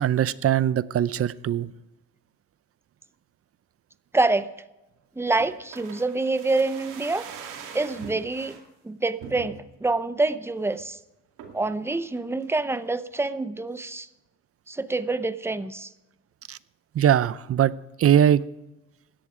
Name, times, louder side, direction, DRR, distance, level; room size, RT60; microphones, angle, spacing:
voice 1, 0.0-1.7 16.5-16.6 16.9-17.7 18.0-18.4, right 10 dB, 50° right, 18 dB, 0.6 m, -21 dB
voice 2, 4.1-4.5 5.2-7.3 7.7-8.6 8.8-11.0 11.5-14.1 14.7-15.9, right 2 dB, 10° right, 13 dB, 0.7 m, -26 dB
sound 1, 5.4-8.6 9.2-9.8 10.2-10.3 10.6-10.9 11.4-11.7 12.2-12.9 13.1-13.2, right 7 dB, 90° right, 2.5 m, -43 dB
16.5 x 11.0 x 5.0 m, 0.97 s
cardioid pair, 90°, 30 cm